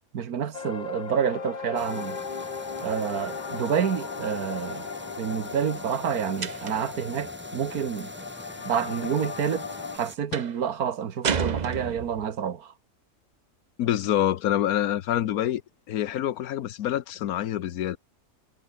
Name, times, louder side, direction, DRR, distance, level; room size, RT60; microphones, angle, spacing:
voice 1, 0.1-2.2 2.8-4.9 5.2-8.1 8.6-9.7 9.9-12.7, right 8 dB, 85° right, 1.8 m, -28 dB
sound 1, 0.5-10.0, left 5 dB, 35° left, 1.0 m, -37 dB
sound 2, 1.7-10.2, equal, 5° right, 4.7 m, -44 dB
sound 3, 6.4-7.0 10.3-10.6 11.2-12.3, right 6 dB, 35° right, 0.8 m, -30 dB
voice 2, 13.8-15.6 15.9-18.0, left 11 dB, 85° left, 1.3 m, -26 dB
omnidirectional pair, 1.5 m